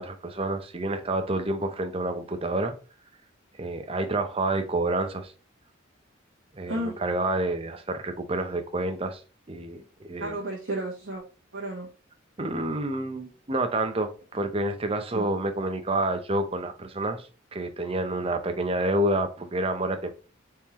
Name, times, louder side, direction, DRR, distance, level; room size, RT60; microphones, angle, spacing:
voice 1, 0.0-2.7 3.6-5.3 6.5-9.2 9.5-10.4 12.4-20.1, right 2 dB, 30° right, 0.6 m, -28 dB
voice 2, 10.2-11.2 11.5-11.9 15.1-15.3, right 1 dB, 85° right, 1.3 m, -32 dB
4.4 x 3.7 x 3.0 m
head